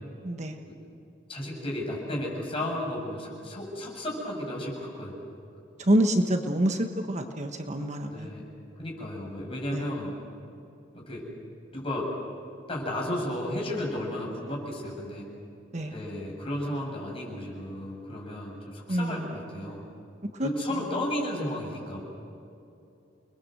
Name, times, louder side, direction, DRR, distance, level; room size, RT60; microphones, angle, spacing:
voice 1, 0.2-0.6 5.8-8.3 9.7-9.9 15.7-15.9 18.9-19.5 20.4-20.5, right 1 dB, 40° right, 5 dB, 1.4 m, -27 dB
voice 2, 1.3-5.1 8.1-8.5 8.8-10.1 10.9-11.3 11.7-12.1 12.7-15.2 15.9-19.8 20.4-22.0, left 1 dB, 30° left, -2 dB, 7.7 m, -33 dB
29.5 x 21.5 x 7.9 m, 2.7 s
head